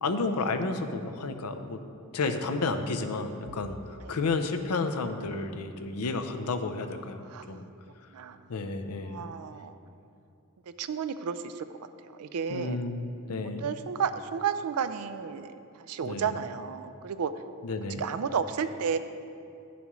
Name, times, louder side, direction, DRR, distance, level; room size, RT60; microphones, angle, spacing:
voice 1, 0.0-1.8 2.1-7.6 8.5-9.2 12.5-13.7 16.0-16.3 17.6-18.0, left 3 dB, 85° left, 7 dB, 0.6 m, -31 dB
voice 2, 7.2-7.5 8.1-8.4 9.0-9.8 10.8-11.7 12.1-12.8 13.6-17.3 18.0-19.0, right 6 dB, 75° right, 11 dB, 0.4 m, -32 dB
10.5 x 7.1 x 3.1 m, 2.5 s
head